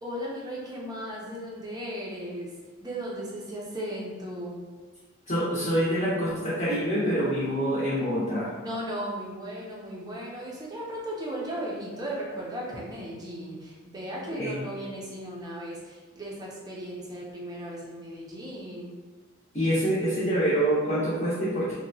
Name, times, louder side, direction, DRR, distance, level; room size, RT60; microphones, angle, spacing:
voice 1, 0.0-2.5 2.8-4.6 8.6-19.0, equal, 20° right, -4 dB, 0.5 m, -36 dB
voice 2, 5.3-8.5 14.3-14.6 19.5-21.7, equal, 35° left, -10 dB, 0.7 m, -26 dB
2.8 x 2.1 x 2.6 m, 1.4 s
head